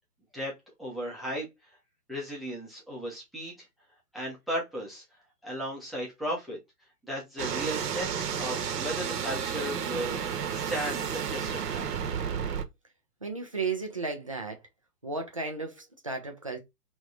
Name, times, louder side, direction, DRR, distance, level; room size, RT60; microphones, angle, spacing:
voice 1, 0.8-1.5 2.1-3.7 4.1-5.0 5.4-6.6 7.1-11.9, equal, ahead, 0.9 m, -35 dB
sound 1, 7.4-12.6, right 7 dB, 75° right, 1.1 m, -32 dB
voice 2, 13.2-14.6 15.0-16.6, right 4 dB, 25° right, 0.4 m, -34 dB
4.8 x 3.0 x 2.4 m
hypercardioid pair, 150°, 48 cm